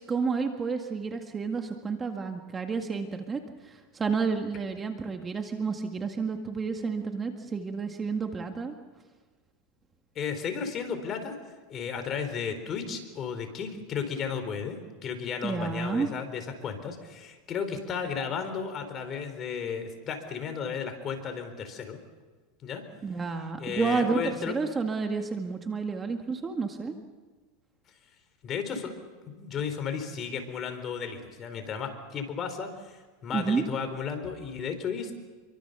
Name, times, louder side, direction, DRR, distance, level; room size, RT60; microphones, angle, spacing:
voice 1, 0.0-8.7 15.4-16.1 23.0-26.9 33.3-33.6, right 5 dB, 20° right, 5 dB, 1.9 m, -30 dB
voice 2, 10.1-22.0 22.6-22.8 23.6-24.5 28.4-28.9 29.3-35.1, left 6 dB, 35° left, 7 dB, 4.4 m, -34 dB
28.0 x 24.0 x 7.0 m, 1.4 s
supercardioid pair, 130°, 0 cm